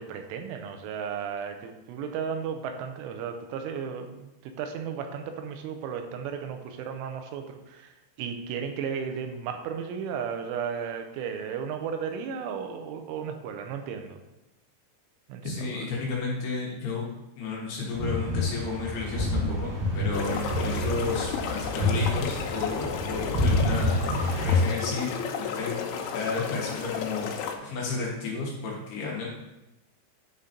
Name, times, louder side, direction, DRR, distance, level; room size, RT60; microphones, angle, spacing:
voice 1, 0.0-7.9 8.2-14.2 15.3-15.9 20.3-20.5, right 7 dB, 85° right, 5 dB, 3.2 m, -34 dB
voice 2, 15.4-17.1 17.4-25.1 25.4-25.8 26.1-29.3, left 4 dB, 70° left, -4 dB, 2.8 m, -32 dB
sound 1, 17.9-24.6, left 1 dB, 65° right, 4.0 m, -28 dB
sound 2, 20.1-27.6, left 7 dB, 85° left, 2.9 m, -33 dB
10.0 x 3.9 x 4.2 m, 0.94 s
omnidirectional pair, 5.6 m